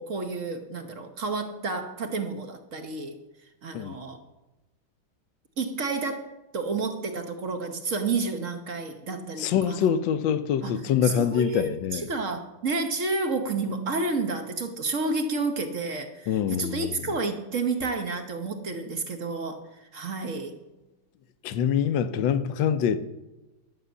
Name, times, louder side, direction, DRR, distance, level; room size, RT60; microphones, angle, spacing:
voice 1, 0.0-3.2 3.6-4.2 5.6-9.9 10.6-20.5, right 3 dB, 50° right, 1.1 m, -30 dB
voice 2, 9.4-12.1 16.3-17.0 21.4-23.0, left 8 dB, 70° left, 1.4 m, -25 dB
11.5 x 6.5 x 8.1 m
omnidirectional pair, 2.3 m